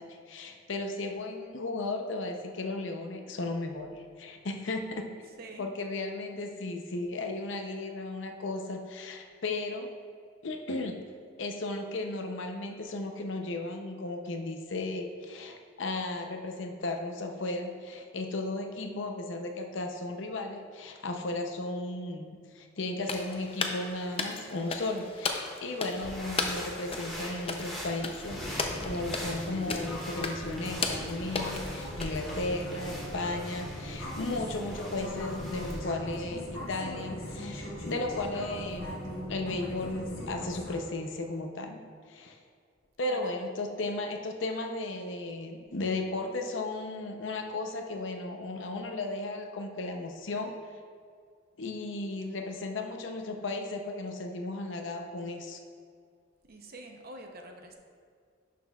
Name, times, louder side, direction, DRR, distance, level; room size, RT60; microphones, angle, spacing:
voice 1, 0.0-5.1 5.6-9.9 10.4-11.0 11.4-39.0 39.3-42.4 43.0-50.5 51.6-55.6, left 2 dB, 70° left, 4 dB, 0.7 m, -35 dB
voice 2, 5.2-5.7 43.0-43.4 56.4-57.7, right 2 dB, 50° right, 3 dB, 0.8 m, -46 dB
sound 1, 23.0-32.7, left 4 dB, 30° left, 0.5 m, -37 dB
sound 2, 25.9-35.8, equal, ahead, 1.8 m, -42 dB
sound 3, 28.3-40.8, equal, 90° left, 1.6 m, -40 dB
11.0 x 6.0 x 2.4 m, 2.1 s
head